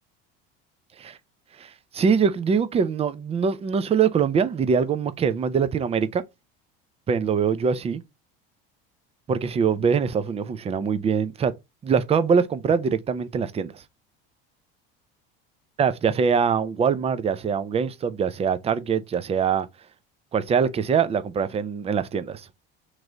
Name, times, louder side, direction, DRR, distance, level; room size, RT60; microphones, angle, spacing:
voice 1, 1.6-6.2 7.1-8.0 9.3-11.5 11.8-13.8 15.8-19.7 20.3-22.5, right 6 dB, 20° right, 0.4 m, -23 dB
3.1 x 2.6 x 4.3 m
supercardioid pair, 100°, 29 cm